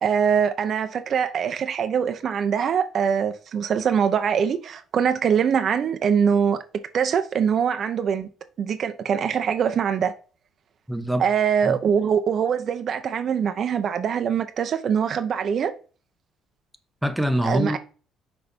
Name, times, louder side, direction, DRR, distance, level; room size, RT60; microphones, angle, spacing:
voice 1, 0.0-6.6 6.9-8.3 8.6-10.1 11.2-15.7 17.4-17.8, right 7 dB, 55° right, 0.8 m, -23 dB
voice 2, 10.9-11.2 11.6-11.8 17.0-17.8, equal, 5° right, 0.9 m, -24 dB
6.2 x 4.2 x 5.2 m
cardioid pair, 85°, 0 cm